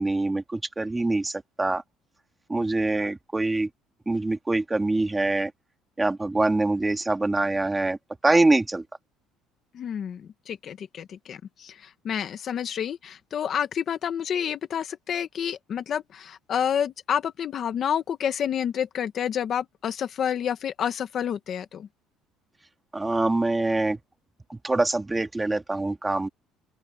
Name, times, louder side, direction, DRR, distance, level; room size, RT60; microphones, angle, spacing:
voice 1, 0.0-1.8 2.5-3.7 4.1-5.5 6.0-8.0 8.2-8.8 22.9-24.0 24.5-26.3, right 2 dB, 10° right, 2.0 m, -24 dB
voice 2, 9.7-21.9, left 8 dB, 35° left, 1.1 m, -29 dB
open air
cardioid pair, 170°, 0 cm